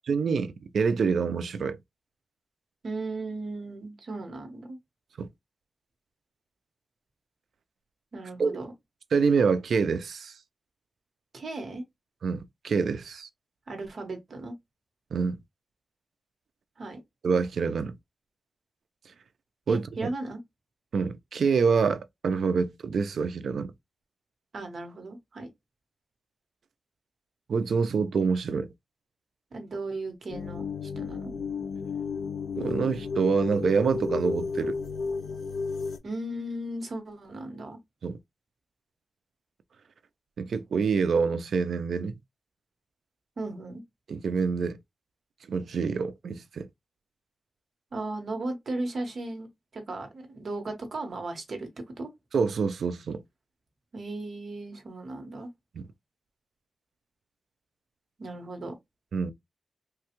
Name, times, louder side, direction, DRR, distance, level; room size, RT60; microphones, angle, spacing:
voice 1, 0.1-1.8 5.2-5.3 8.4-8.6 9.1-10.3 12.2-13.3 15.1-15.4 17.2-17.9 19.7-20.1 20.9-23.7 27.5-28.7 32.6-34.8 38.0-38.2 40.4-42.2 44.1-44.8 45.5-46.7 52.3-53.2 55.8-55.9 59.1-59.3, right 5 dB, 70° right, 0.4 m, -26 dB
voice 2, 2.8-4.8 8.1-8.7 11.3-11.8 13.7-14.5 16.8-17.0 19.7-20.4 24.5-25.5 29.5-31.3 36.0-37.8 43.4-43.8 47.9-49.5 49.7-51.7 52.0-52.1 53.9-55.5 58.2-58.7, right 2 dB, 50° right, 1.0 m, -36 dB
sound 1, 30.3-36.0, left 4 dB, 75° left, 0.6 m, -32 dB
3.2 x 2.3 x 2.9 m
wide cardioid pair, 165°, 0 cm